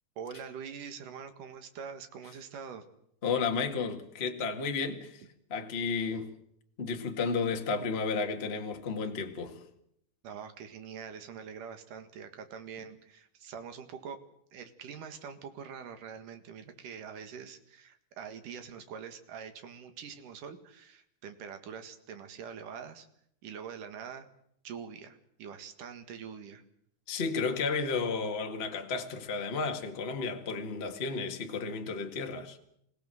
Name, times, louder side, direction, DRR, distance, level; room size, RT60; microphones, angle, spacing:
voice 1, 0.2-2.9 10.2-14.2 14.5-23.1 23.4-24.3 24.6-26.6, right 7 dB, 55° right, 2.9 m, -44 dB
voice 2, 3.2-5.2 5.5-6.3 6.8-9.6 27.1-32.6, left 4 dB, 50° left, 0.7 m, -32 dB
27.0 x 17.0 x 7.7 m
omnidirectional pair, 4.9 m